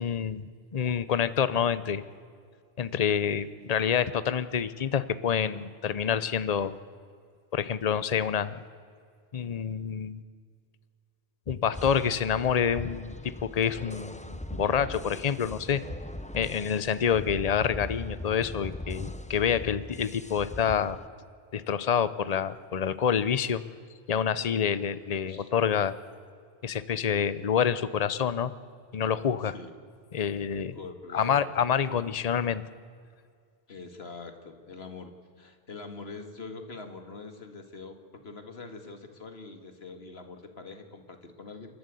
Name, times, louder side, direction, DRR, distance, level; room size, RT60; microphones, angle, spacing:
voice 1, 0.0-2.0 2.8-6.8 7.5-8.6 9.3-10.2 11.5-15.8 16.3-21.0 21.5-23.6 24.1-25.9 26.6-28.5 28.9-29.5 30.1-30.8 31.1-32.6, left 7 dB, 40° left, 15 dB, 0.8 m, -27 dB
sound 1, 11.7-21.1, left 1 dB, 10° left, 0.5 m, -40 dB
voice 2, 30.7-31.7 33.7-41.8, left 3 dB, 75° left, 7 dB, 2.1 m, -44 dB
28.0 x 12.0 x 8.3 m, 2.2 s
omnidirectional pair, 1.1 m